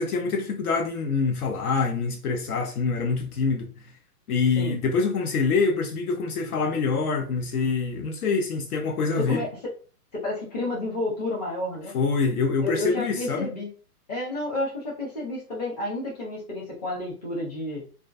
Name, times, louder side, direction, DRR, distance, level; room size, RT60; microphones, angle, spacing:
voice 1, 0.0-3.8 4.3-9.4 11.9-13.5, left 4 dB, 70° left, 0.6 m, -25 dB
voice 2, 9.2-9.5 10.1-11.9 12.6-13.7 14.1-17.8, left 2 dB, 25° left, 0.7 m, -30 dB
2.3 x 2.2 x 2.4 m
hypercardioid pair, 165°, 47 cm